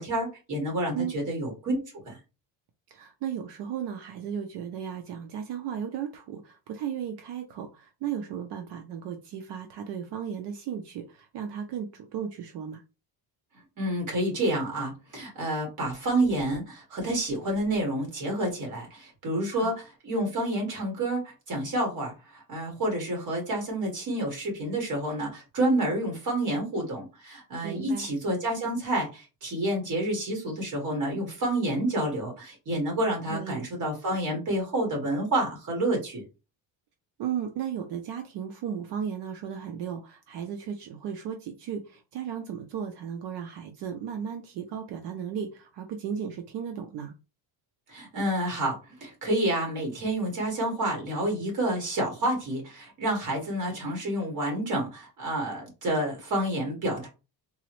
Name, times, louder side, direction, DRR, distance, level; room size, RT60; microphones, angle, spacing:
voice 1, 0.0-2.2 13.8-36.2 47.9-48.7 49.0-57.1, right 1 dB, 40° right, 1.7 m, -29 dB
voice 2, 2.9-12.8 19.5-19.7 27.6-28.1 33.3-33.6 37.2-47.1, right 8 dB, 60° right, 0.6 m, -35 dB
3.8 x 2.0 x 3.0 m
cardioid pair, 160°, 47 cm